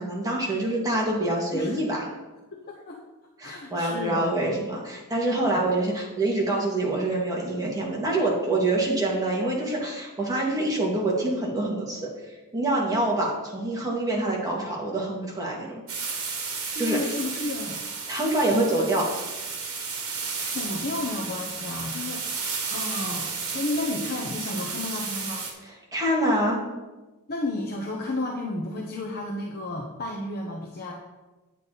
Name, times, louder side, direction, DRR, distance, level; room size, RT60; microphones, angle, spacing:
voice 1, 0.0-2.1 3.4-12.0 12.5-15.8 16.8-17.0 18.1-19.1 25.9-26.6, right 1 dB, 15° right, -3 dB, 2.4 m, -26 dB
voice 2, 1.5-2.0 2.5-3.0 3.4-4.5 5.5-5.6 16.7-17.8 18.5-18.7 20.5-22.2 22.7-25.5 27.3-30.9, left 2 dB, 45° left, -1 dB, 1.1 m, -32 dB
sound 1, 15.9-25.5, right 5 dB, 70° right, 2.0 m, -33 dB
9.5 x 8.4 x 4.2 m, 1.1 s
head